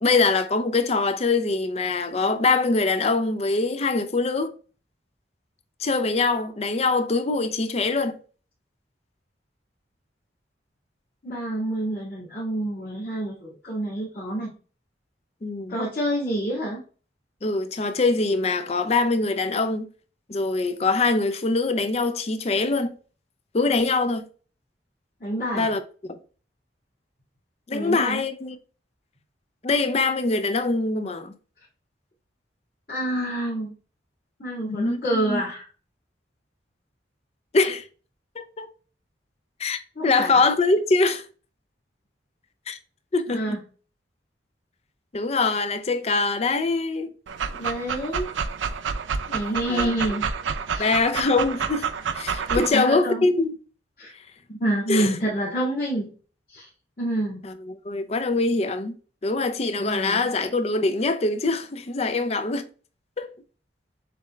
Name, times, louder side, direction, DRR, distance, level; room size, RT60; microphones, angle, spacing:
voice 1, 0.0-4.5 5.8-8.2 15.4-15.8 17.4-19.9 20.3-22.9 23.5-24.3 25.5-25.8 26.1-26.2 27.7-28.6 29.6-31.3 34.7-35.4 37.5-37.8 38.4-38.7 39.6-41.2 42.7-42.8 43.1-43.6 45.1-47.1 49.7-49.9 50.8-51.9 52.1-53.6 54.9-55.1 57.4-59.0 59.2-62.6 63.2-63.3, left 3 dB, 35° left, 0.5 m, -23 dB
voice 2, 11.2-14.5 15.7-16.8 25.2-25.8 27.7-28.2 32.9-33.7 34.4-35.7 40.0-40.4 43.3-43.6 47.5-48.3 49.3-50.2 50.7-50.9 52.6-53.3 54.0-54.1 54.5-56.1 56.5-56.7 57.0-57.4 59.8-60.3, right 1 dB, 50° left, 2.0 m, -28 dB
Dog, 47.3-52.7, right 6 dB, 90° right, 0.5 m, -29 dB
6.8 x 3.2 x 2.3 m
head